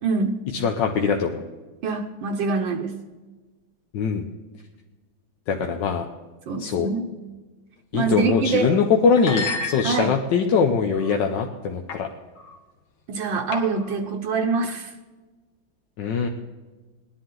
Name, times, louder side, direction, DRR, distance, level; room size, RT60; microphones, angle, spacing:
voice 1, 0.0-0.5 1.8-2.9 6.5-7.1 7.9-8.7 9.8-10.2 13.1-14.9, right 4 dB, 70° right, 2 dB, 1.6 m, -25 dB
voice 2, 0.5-1.4 3.9-4.2 5.5-6.0 6.6-6.9 7.9-12.1 16.0-16.3, left 5 dB, 70° left, 3 dB, 1.4 m, -22 dB
sound 1, 8.2-8.5 9.1-10.3 10.9-11.3 11.9-12.1 12.4-12.6 13.5-14.0, left 3 dB, 85° left, 2.1 m, -32 dB
19.0 x 11.0 x 3.8 m, 1.3 s
omnidirectional pair, 2.2 m